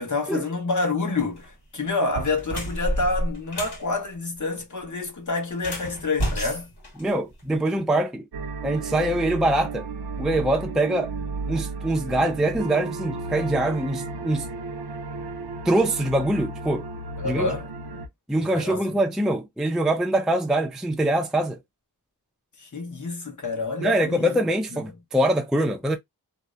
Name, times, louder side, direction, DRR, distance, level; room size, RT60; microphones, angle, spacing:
voice 1, 0.0-6.7 17.2-18.0 18.4-18.9 22.6-24.4 24.7-24.8, left 3 dB, 50° left, 1.0 m, -28 dB
sound 1, 1.2-1.5 2.0-3.8 5.5-7.6, equal, 80° left, 1.4 m, -30 dB
voice 2, 7.0-8.2 8.6-9.9 10.2-11.1 11.5-14.5 15.7-16.8 17.3-17.5 18.3-21.6 23.8-26.0, right 1 dB, ahead, 0.4 m, -23 dB
sound 2, 8.3-18.1, right 3 dB, 75° right, 0.7 m, -33 dB
2.7 x 2.0 x 2.3 m
wide cardioid pair, 55°, 39 cm